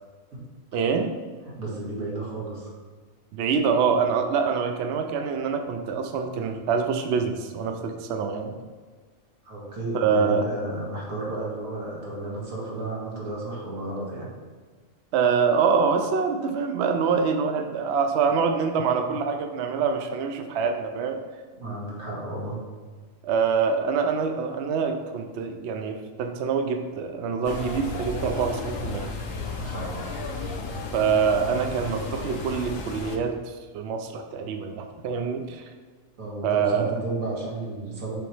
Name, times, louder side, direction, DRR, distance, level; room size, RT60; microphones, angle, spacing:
voice 1, 0.7-1.1 3.3-8.6 9.9-10.4 15.1-21.2 23.2-29.1 30.9-35.6 36.4-36.9, right 6 dB, 65° right, 5 dB, 0.8 m, -25 dB
voice 2, 1.4-2.7 9.4-14.3 21.5-22.6 29.5-30.1 36.2-38.2, right 2 dB, 90° right, -5 dB, 2.0 m, -33 dB
sound 1, 27.4-33.2, left 3 dB, 75° left, 1.2 m, -33 dB
7.0 x 3.0 x 4.8 m, 1.5 s
omnidirectional pair, 1.4 m